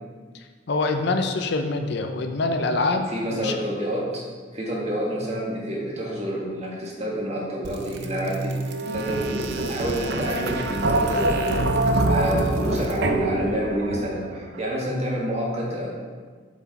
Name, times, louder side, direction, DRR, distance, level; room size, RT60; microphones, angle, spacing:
voice 1, 0.7-3.6, left 3 dB, 60° left, 5 dB, 0.5 m, -25 dB
voice 2, 3.1-4.2 4.5-11.8 12.1-15.9, equal, 35° right, -4 dB, 1.6 m, -28 dB
sound 1, 7.6-14.4, right 2 dB, 60° right, 0.5 m, -25 dB
7.0 x 4.7 x 4.1 m, 1.6 s
head